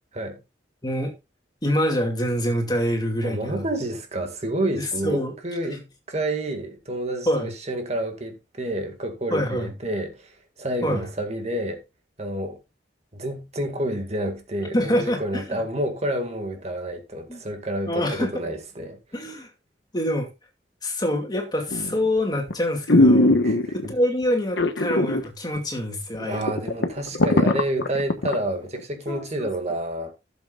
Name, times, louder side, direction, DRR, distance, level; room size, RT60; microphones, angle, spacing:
voice 1, 0.8-1.1 1.6-3.6 4.8-5.3 7.3-7.5 9.3-9.7 10.8-11.0 14.7-15.4 17.3-17.4 17.9-18.3 19.1-19.5 19.9-20.3 20.8-23.4 23.7-26.5 27.1-27.2 29.1-29.5, equal, 25° left, 2.4 m, -25 dB
voice 2, 3.2-11.8 12.2-12.6 13.1-19.0 23.4-24.0 26.2-30.1, right 1 dB, 40° right, 2.0 m, -29 dB
sound 1, 21.7-22.1 22.5-22.6 22.9-23.9 24.6-25.3 25.6-25.7 26.1-26.2 26.5-28.3 28.8-28.9, left 1 dB, 90° left, 1.3 m, -19 dB
16.0 x 7.5 x 2.4 m
head